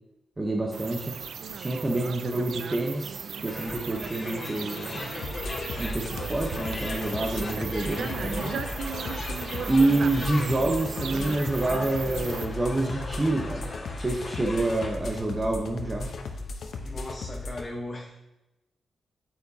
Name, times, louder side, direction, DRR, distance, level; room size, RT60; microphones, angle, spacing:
voice 1, 0.4-1.1 1.6-5.1 5.8-8.5 9.7-13.7 14.0-16.1, right 2 dB, 25° right, 0 dB, 1.0 m, -27 dB
sound 1, 0.7-12.5, right 6 dB, 75° right, 0.4 m, -37 dB
sound 2, 3.5-14.9, left 2 dB, 45° left, 1.7 m, -38 dB
sound 3, 5.2-17.7, left 3 dB, 70° left, 0.9 m, -36 dB
voice 2, 16.8-18.2, left 1 dB, 20° left, -1 dB, 1.0 m, -38 dB
8.9 x 7.2 x 2.8 m, 0.97 s
cardioid pair, 80°, 0 cm